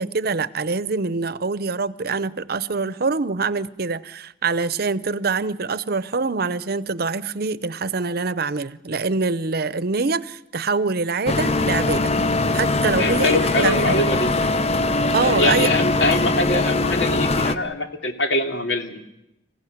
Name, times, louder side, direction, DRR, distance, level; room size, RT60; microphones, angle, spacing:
voice 1, 0.0-12.1 12.5-14.1 15.1-15.7, right 4 dB, 55° right, 0.8 m, -24 dB
sound 1, 11.3-17.6, left 2 dB, 35° left, 0.9 m, -21 dB
voice 2, 12.9-14.3 15.2-19.0, left 2 dB, 85° left, 2.9 m, -23 dB
26.5 x 16.0 x 9.4 m
head